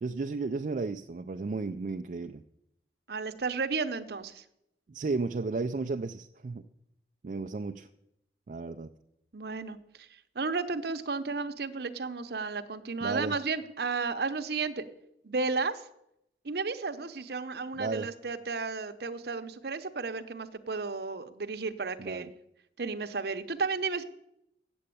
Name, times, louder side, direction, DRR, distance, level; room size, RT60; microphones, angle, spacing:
voice 1, 0.0-2.4 4.9-6.6 7.2-7.9 8.5-8.9 13.0-13.4 17.7-18.1 22.0-22.3, right 3 dB, 45° right, 6 dB, 0.3 m, -33 dB
voice 2, 3.1-4.4 9.3-10.1 10.3-14.8 15.2-15.8 16.4-22.3 22.8-24.0, right 4 dB, 65° right, 9 dB, 0.7 m, -33 dB
7.8 x 7.7 x 8.5 m, 0.81 s
head